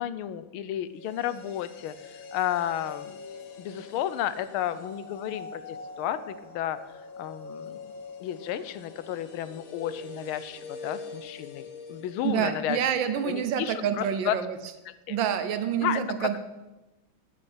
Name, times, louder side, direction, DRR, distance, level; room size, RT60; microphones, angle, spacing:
voice 1, 0.0-3.2 3.6-6.8 7.2-7.8 8.2-12.8 13.2-14.3 15.1-15.2 15.8-16.4, left 11 dB, 90° left, 14 dB, 1.5 m, -32 dB
sound 1, 0.9-13.0 13.3-13.4, left 4 dB, 70° left, 2.0 m, -44 dB
voice 2, 12.2-14.6 15.1-16.4, right 8 dB, 70° right, 10 dB, 1.5 m, -27 dB
10.0 x 6.7 x 7.2 m, 1.0 s
omnidirectional pair, 2.3 m